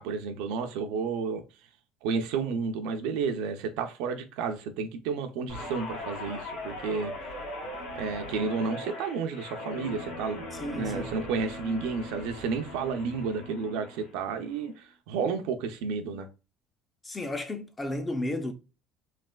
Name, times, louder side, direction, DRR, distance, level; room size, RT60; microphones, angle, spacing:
voice 1, 0.0-1.4 2.0-7.1 7.9-10.4 10.7-16.3, right 5 dB, 80° right, 0.4 m, -31 dB
Guitar, 5.5-14.1 14.5-14.8, left 1 dB, 85° left, 1.6 m, -40 dB
voice 2, 10.6-11.1 17.0-18.5, left 1 dB, 15° left, 0.4 m, -33 dB
3.2 x 2.4 x 2.2 m
cardioid pair, 145°, 0 cm